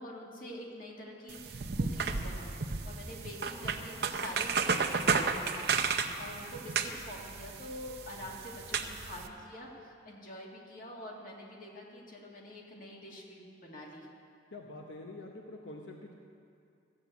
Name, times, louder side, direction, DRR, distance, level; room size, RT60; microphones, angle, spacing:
voice 1, 0.0-14.1, left 1 dB, 45° left, -2 dB, 2.2 m, -46 dB
sound 1, 1.3-9.3, right 5 dB, 60° right, 0.7 m, -33 dB
voice 2, 14.5-16.1, left 2 dB, 75° left, 1 dB, 1.0 m, -46 dB
14.5 x 7.7 x 8.2 m, 2.4 s
head